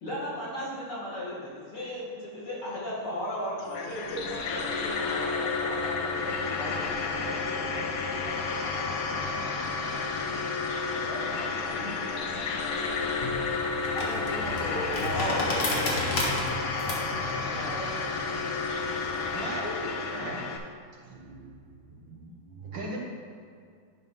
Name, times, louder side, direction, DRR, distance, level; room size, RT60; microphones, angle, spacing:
voice 1, 0.0-6.9 11.7-11.9 13.9-15.7, equal, 55° left, -6 dB, 2.8 m, -35 dB
sound 1, 3.6-20.6, left 4 dB, 80° left, 1.6 m, -31 dB
voice 2, 8.0-9.5 10.7-11.8 16.9-19.6 22.6-23.0, equal, 25° right, -7 dB, 1.9 m, -44 dB
sound 2, 12.7-19.4, left 1 dB, 35° left, 1.4 m, -33 dB
voice 3, 19.3-20.5 21.0-23.0, right 1 dB, 65° right, -3 dB, 1.9 m, -39 dB
10.5 x 3.9 x 5.5 m, 2.2 s
omnidirectional pair, 2.3 m